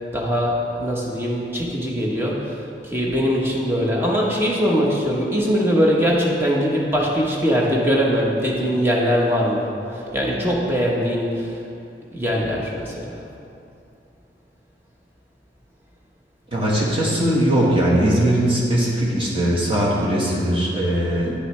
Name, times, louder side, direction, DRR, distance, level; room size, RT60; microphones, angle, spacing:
voice 1, 0.1-2.6 2.8-11.6 12.1-13.2, equal, 15° right, -3 dB, 0.9 m, -21 dB
voice 2, 16.5-21.4, right 1 dB, 30° right, -5 dB, 1.4 m, -20 dB
9.8 x 6.4 x 3.2 m, 2.6 s
head